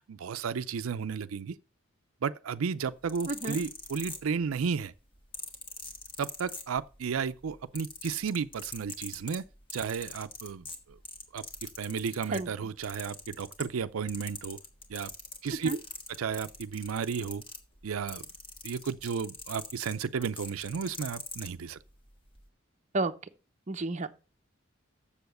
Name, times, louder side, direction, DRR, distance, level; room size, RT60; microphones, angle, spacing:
voice 1, 0.1-1.6 2.2-4.9 6.2-9.4 9.7-11.0 11.3-14.6 14.9-15.1 15.4-15.8 16.1-17.4 17.8-18.2 18.6-21.8, right 6 dB, 90° right, 0.5 m, -33 dB
sound 1, 2.9-4.6 5.3-7.1 7.4-12.5 12.8-13.8 14.1-21.5 22.3-22.4, left 3 dB, 25° left, 1.5 m, -42 dB
voice 2, 3.3-3.6 12.3-12.5 15.6-15.8 22.9-23.1 23.7-24.1, right 2 dB, 35° right, 0.7 m, -31 dB
7.0 x 7.0 x 6.5 m
head